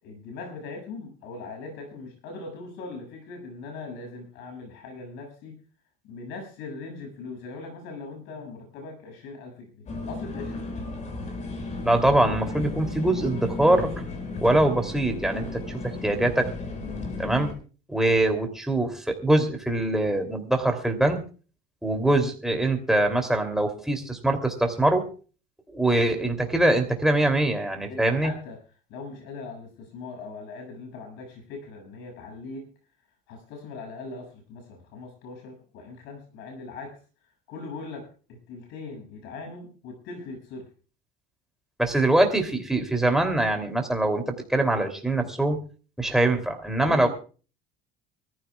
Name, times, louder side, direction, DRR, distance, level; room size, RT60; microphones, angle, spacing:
voice 1, 0.0-5.6 6.0-10.7 27.9-28.6 28.9-32.7 33.3-37.0 37.5-40.7 46.8-47.1, left 3 dB, 70° left, 2 dB, 7.0 m, -40 dB
sound 1, 9.9-17.5, left 3 dB, 40° left, 5.1 m, -34 dB
voice 2, 11.8-13.9 14.4-16.5 17.2-17.5 17.9-21.2 21.8-25.1 25.7-28.3 41.8-45.6 46.0-47.1, right 1 dB, ahead, 4 dB, 3.0 m, -23 dB
24.5 x 14.5 x 2.4 m, 0.38 s
supercardioid pair, 110°, 19 cm